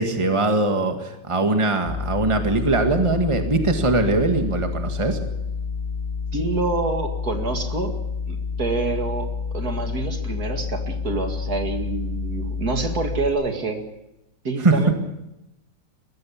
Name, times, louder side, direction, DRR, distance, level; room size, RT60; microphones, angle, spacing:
voice 1, 0.0-5.2 14.6-14.8, right 2 dB, 20° right, 5 dB, 1.9 m, -21 dB
sound 1, 1.9-13.3, left 5 dB, 25° left, 3.5 m, -29 dB
voice 2, 6.3-7.9 8.3-13.8 14.4-14.9, right 3 dB, 65° right, 5 dB, 2.7 m, -27 dB
21.5 x 15.5 x 8.7 m, 0.91 s
omnidirectional pair, 1.8 m